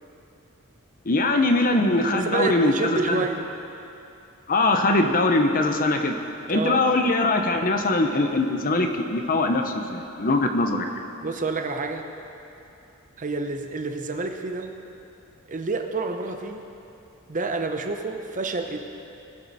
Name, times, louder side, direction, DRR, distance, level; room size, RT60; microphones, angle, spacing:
voice 1, 1.1-3.2 4.5-6.1 6.5-10.9, left 2 dB, 40° left, 5 dB, 0.9 m, -22 dB
voice 2, 2.1-3.5 6.5-6.8 11.2-12.1 13.2-14.7 15.5-16.6 17.3-18.8, right 3 dB, 35° right, 5 dB, 0.8 m, -28 dB
20.5 x 7.8 x 4.2 m, 2.7 s
head